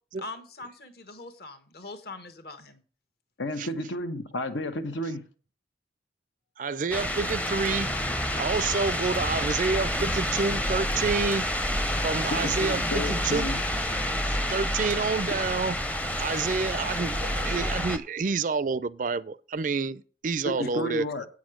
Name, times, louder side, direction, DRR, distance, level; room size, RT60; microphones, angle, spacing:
voice 1, 0.2-2.8 20.6-20.7, left 2 dB, 55° left, 1.2 m, -42 dB
voice 2, 3.4-5.2 12.3-13.6 20.4-21.3, left 1 dB, 85° left, 1.1 m, -32 dB
voice 3, 6.6-7.9 8.4-11.5 12.0-13.5 14.3-15.7 16.2-21.1, right 4 dB, 45° right, 0.4 m, -28 dB
sound 1, 6.9-18.0, equal, 10° left, 0.6 m, -28 dB
8.5 x 6.3 x 6.3 m
head